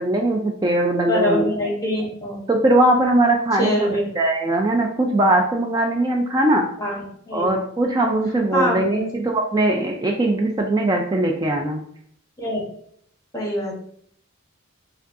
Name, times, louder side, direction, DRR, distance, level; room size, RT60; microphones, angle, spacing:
voice 1, 0.0-1.5 2.5-6.7 7.3-11.8, right 1 dB, 20° right, 2 dB, 0.3 m, -20 dB
voice 2, 1.1-2.4 3.6-4.0 6.8-7.5 8.5-9.1 12.4-12.6 13.3-13.7, equal, 15° left, -3 dB, 0.9 m, -24 dB
4.9 x 2.2 x 2.6 m, 0.64 s
head